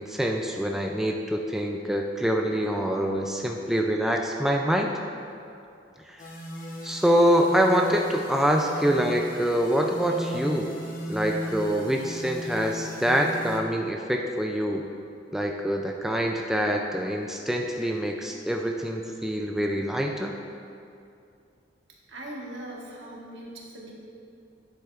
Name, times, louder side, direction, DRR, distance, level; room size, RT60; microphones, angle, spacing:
voice 1, 0.0-4.9 6.1-6.2 6.8-10.7 11.1-14.9 15.3-20.3, equal, ahead, 1 dB, 0.3 m, -25 dB
sound 1, 6.2-13.6, equal, 50° left, 0.8 m, -37 dB
voice 2, 22.1-23.9, right 1 dB, 70° right, -3 dB, 1.4 m, -40 dB
9.2 x 7.7 x 2.4 m, 2.5 s
head